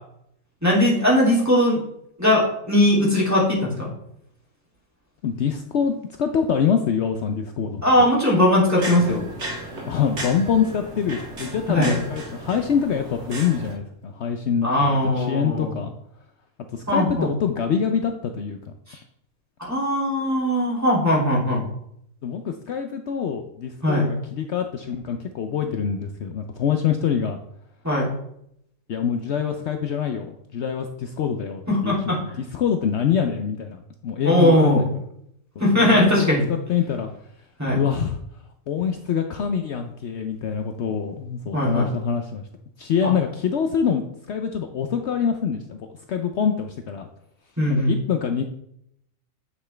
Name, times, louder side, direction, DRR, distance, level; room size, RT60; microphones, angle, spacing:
voice 1, 0.6-1.8 2.2-3.9 7.8-9.2 11.7-11.9 14.6-15.8 16.9-17.3 18.9-19.0 19.6-21.6 23.8-24.1 27.8-28.1 31.7-32.2 34.2-34.9 35.6-36.4 37.6-37.8 41.5-41.9 43.0-43.1 47.6-47.9, left 1 dB, 10° right, -6 dB, 2.9 m, -19 dB
voice 2, 5.2-8.1 9.9-15.9 16.7-18.6 22.2-27.4 28.9-34.9 35.6-35.9 36.2-37.1 37.7-38.2 38.7-42.4 42.8-47.1 47.7-48.4, left 7 dB, 65° left, 6 dB, 0.9 m, -25 dB
sound 1, 8.8-13.8, right 1 dB, 60° right, 1.8 m, -34 dB
9.6 x 5.9 x 3.4 m, 0.74 s
omnidirectional pair, 1.3 m